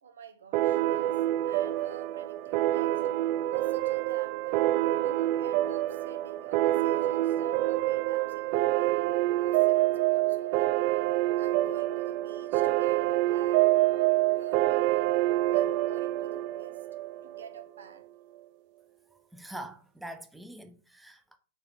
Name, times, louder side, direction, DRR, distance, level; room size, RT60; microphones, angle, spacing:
voice 1, 0.0-3.0 3.5-4.6 5.0-9.0 9.3-11.0 11.3-15.1 15.5-16.8 17.2-18.1, right 6 dB, 70° right, 1.4 m, -50 dB
sound 1, 0.5-17.6, right 16 dB, 45° right, 0.4 m, -27 dB
voice 2, 19.3-21.4, right 1 dB, 5° right, 0.9 m, -44 dB
6.7 x 3.9 x 6.3 m
figure-of-eight pair, 100°, 0 cm